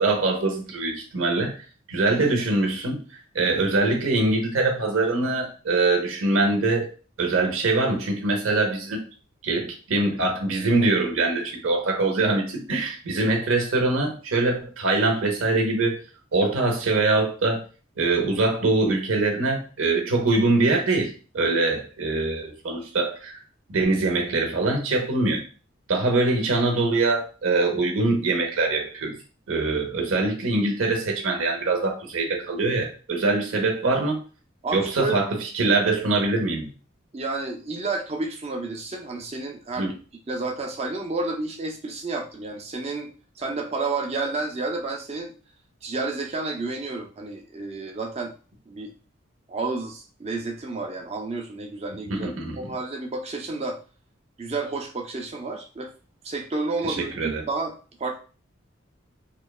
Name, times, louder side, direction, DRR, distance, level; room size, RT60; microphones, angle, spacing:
voice 1, 0.0-3.0 3.3-6.9 7.2-9.0 9.4-16.0 16.3-17.6 18.0-23.3 23.7-25.4 25.9-29.1 29.5-34.2 34.7-36.7 39.8-39.9 52.1-52.7 56.8-57.4, right 2 dB, 90° right, 2 dB, 0.7 m, -23 dB
voice 2, 34.6-35.2 37.1-39.9 40.3-43.1 43.4-45.3 45.8-48.3 48.7-48.9 49.5-52.3 52.6-53.8 54.4-55.9 56.2-57.7 58.0-58.2, right 3 dB, 30° right, 3 dB, 0.4 m, -30 dB
2.9 x 2.1 x 2.3 m, 0.37 s
head